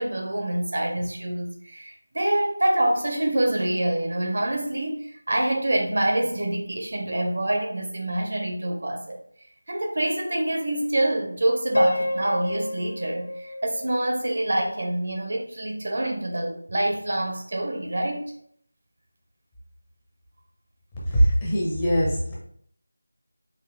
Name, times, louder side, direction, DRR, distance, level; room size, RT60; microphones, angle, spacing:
voice 1, 0.0-9.2 9.7-18.2, right 1 dB, 45° right, 2 dB, 0.6 m, -26 dB
Piano, 11.7-14.8, left 1 dB, 55° left, 0.5 m, -29 dB
voice 2, 21.1-22.3, equal, 10° left, -7 dB, 0.7 m, -21 dB
4.0 x 2.6 x 3.1 m, 0.64 s
figure-of-eight pair, 170°, 0 cm